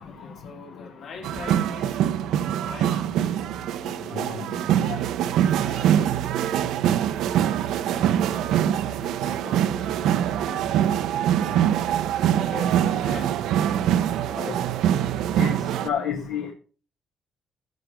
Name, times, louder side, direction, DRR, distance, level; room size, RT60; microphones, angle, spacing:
voice 1, 0.0-2.0 2.6-3.1 5.4-11.0 12.1-13.4 14.2-15.3, left 4 dB, 65° left, 3.1 m, -43 dB
sound 1, 1.2-15.9, right 10 dB, 85° right, 0.6 m, -24 dB
voice 2, 15.8-16.5, left 8 dB, 85° left, 1.5 m, -29 dB
14.0 x 5.8 x 4.9 m
cardioid pair, 100°, 0 cm